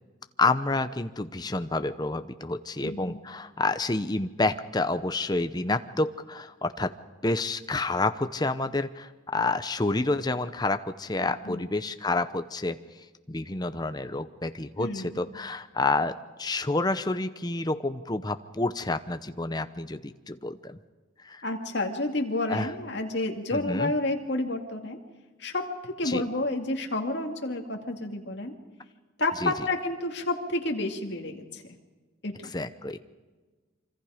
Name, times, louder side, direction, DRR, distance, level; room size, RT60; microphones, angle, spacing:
voice 1, 0.4-6.9 7.2-12.8 13.3-16.1 16.4-20.8 21.2-21.4 22.5-22.7 23.5-23.9 26.0-26.2 29.4-29.7 32.5-33.0, left 2 dB, 20° left, 10 dB, 0.8 m, -29 dB
voice 2, 2.8-3.2 11.2-11.7 14.8-15.2 21.4-25.0 25.4-28.5 29.2-31.6 32.2-32.5, left 2 dB, 55° left, 2 dB, 2.4 m, -30 dB
26.0 x 25.0 x 5.1 m, 1.3 s
head